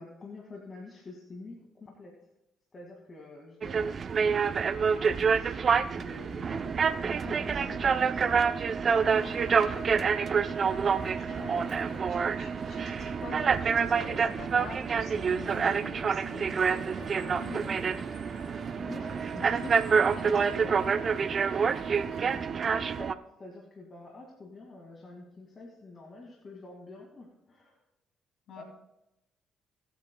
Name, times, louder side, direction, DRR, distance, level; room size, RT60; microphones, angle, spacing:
voice 1, 0.0-2.3 2.7-4.0 5.3-9.6 18.6-20.0 20.6-20.7 22.1-27.8 28.6-28.7, left 2 dB, 40° left, 0 dB, 2.2 m, -47 dB
sound 1, 3.6-23.1, right 6 dB, 50° right, 0.6 m, -27 dB
Crowd, 8.9-22.4, left 2 dB, 90° left, 4.4 m, -52 dB
voice 2, 11.0-18.0 19.5-19.7 20.1-20.9 28.5-28.6, left 3 dB, 65° left, 2 dB, 2.7 m, -46 dB
22.0 x 8.7 x 2.3 m, 0.87 s
supercardioid pair, 65°, 0 cm